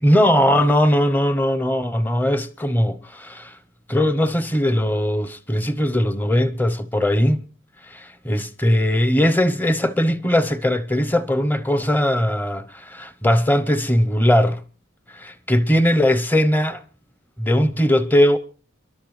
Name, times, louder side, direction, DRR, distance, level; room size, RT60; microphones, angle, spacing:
voice 1, 0.0-3.5 3.9-7.4 7.9-14.6 15.1-16.8 17.4-18.4, equal, 10° left, 0.8 m, -19 dB
29.5 x 11.5 x 3.2 m
head